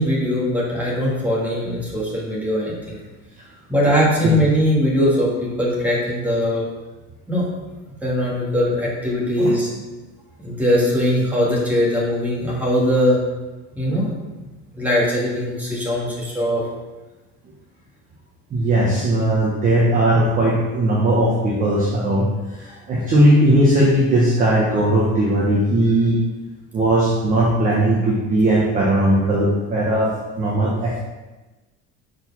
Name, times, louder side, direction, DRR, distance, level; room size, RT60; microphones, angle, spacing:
voice 1, 0.0-3.0 3.7-6.7 7.3-7.5 8.0-9.7 10.4-13.2 13.8-14.1 14.8-16.6, equal, 5° right, -6 dB, 1.9 m, -20 dB
voice 2, 18.5-26.2 26.7-31.0, right 1 dB, 25° right, -5 dB, 1.0 m, -18 dB
6.6 x 4.7 x 5.4 m, 1.2 s
cardioid pair, 165°, 32 cm